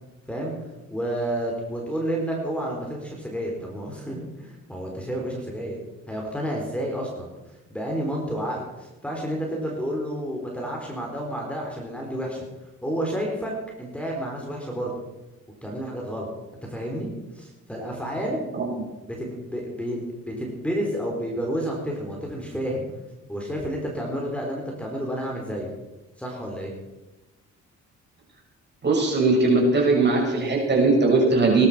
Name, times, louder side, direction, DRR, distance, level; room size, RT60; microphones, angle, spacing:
voice 1, 0.9-5.8 6.1-7.3 7.7-12.4 12.8-13.5 13.8-14.9 15.6-16.3 16.7-18.5 19.0-20.0 20.3-22.9 23.3-25.7 26.2-26.7, equal, 5° left, -1 dB, 4.2 m, -30 dB
voice 2, 28.8-31.7, right 3 dB, 35° right, -1 dB, 7.1 m, -19 dB
20.0 x 12.0 x 5.1 m, 1.1 s
cardioid pair, 90°, 30 cm